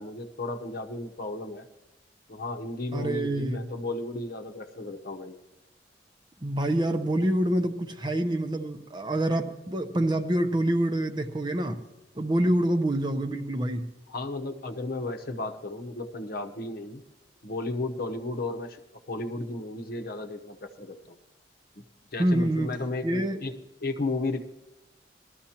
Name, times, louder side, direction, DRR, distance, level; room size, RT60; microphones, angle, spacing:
voice 1, 0.0-1.7 2.3-5.4 14.1-17.0 17.4-18.8 19.1-21.2 21.8-21.9 22.1-24.4, left 2 dB, 55° left, 6 dB, 0.9 m, -34 dB
voice 2, 2.9-3.6 6.4-11.8 12.2-13.9 22.2-22.7 23.0-23.4, right 1 dB, 25° right, 6 dB, 0.7 m, -26 dB
20.0 x 13.0 x 2.9 m, 1.0 s
head